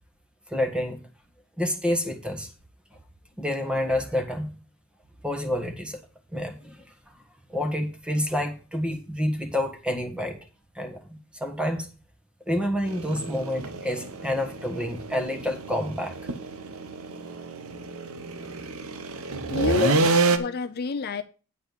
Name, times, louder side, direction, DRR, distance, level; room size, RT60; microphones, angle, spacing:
voice 1, 0.5-1.0 1.6-2.5 3.4-4.5 5.2-6.0 6.3-6.8 7.5-10.4 10.7-11.9 12.5-16.1 19.8-19.9, left 1 dB, 5° right, 1.6 m, -28 dB
sound 1, 12.9-20.4, right 3 dB, 85° right, 0.9 m, -28 dB
voice 2, 19.5-21.2, left 5 dB, 50° left, 0.5 m, -29 dB
9.4 x 4.5 x 7.0 m
head